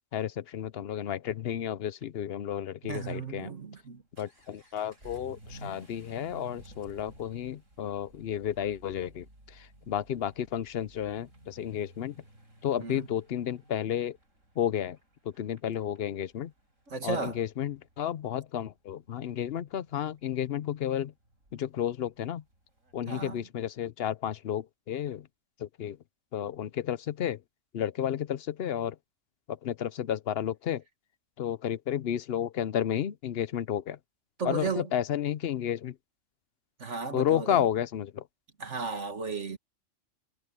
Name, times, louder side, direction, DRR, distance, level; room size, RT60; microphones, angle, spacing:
voice 1, 0.1-3.5 4.2-12.1 12.6-14.2 14.6-15.0 15.2-16.5 17.0-21.1 21.5-22.4 22.9-25.3 25.6-26.0 26.3-27.4 27.7-29.0 29.5-30.8 31.4-34.0 34.4-36.0 37.1-38.3, left 10 dB, 60° left, 0.8 m, -32 dB
voice 2, 2.8-4.0 12.8-13.1 16.9-17.4 23.1-23.4 34.4-34.9 36.8-37.7 38.6-39.6, right 5 dB, 65° right, 2.4 m, -35 dB
Vehicle / Accelerating revving vroom, 3.6-23.4, right 1 dB, 85° right, 8.0 m, -55 dB
omnidirectional pair, 1.3 m